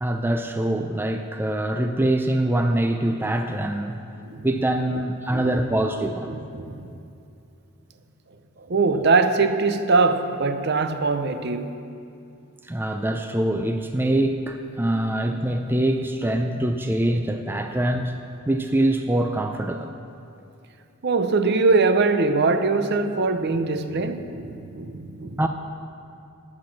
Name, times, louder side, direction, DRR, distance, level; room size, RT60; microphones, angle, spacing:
voice 1, 0.0-4.0 4.4-6.3 12.7-18.2 18.5-19.9 25.4-25.5, right 1 dB, 10° right, 0.3 m, -24 dB
voice 2, 6.3-6.9 8.6-11.7 16.5-16.6 21.0-25.5, right 3 dB, 50° right, 0.6 m, -22 dB
12.0 x 8.5 x 6.4 m
head